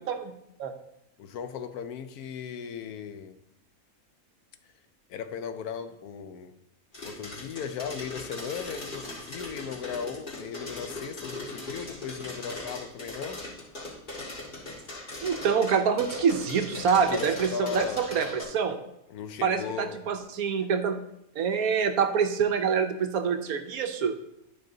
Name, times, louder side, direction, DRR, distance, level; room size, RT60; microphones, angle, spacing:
voice 1, 1.2-3.4 5.1-6.5 7.0-13.4 17.1-18.1 19.1-20.0, left 7 dB, 85° left, 1.2 m, -37 dB
sound 1, 6.9-18.4, left 2 dB, 35° left, 2.2 m, -39 dB
voice 2, 15.2-18.8 19.4-21.0 21.4-24.1, right 6 dB, 75° right, 1.3 m, -26 dB
12.0 x 4.6 x 3.9 m
omnidirectional pair, 1.6 m